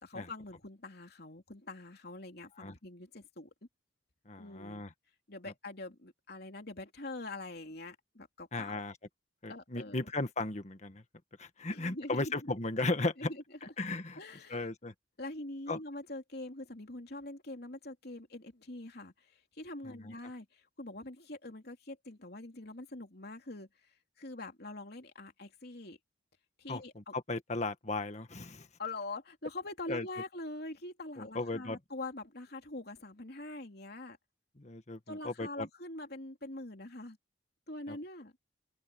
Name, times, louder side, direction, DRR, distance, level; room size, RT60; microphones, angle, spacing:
voice 1, 0.0-3.5 4.4-4.8 5.3-8.8 9.5-10.0 11.7-12.3 13.2-13.4 14.1-14.7 15.2-23.7 24.2-26.0 26.6-27.1 28.8-34.2 35.1-37.2 37.7-38.3, left 2 dB, 55° left, 3.2 m, -44 dB
voice 2, 4.2-4.9 8.5-8.9 9.4-11.0 11.4-13.3 13.8-14.2 14.5-14.9 15.7-15.8 19.8-20.1 26.7-28.7 29.9-30.1 31.2-31.8 34.6-35.7 37.9-38.0, left 2 dB, 40° left, 1.6 m, -36 dB
head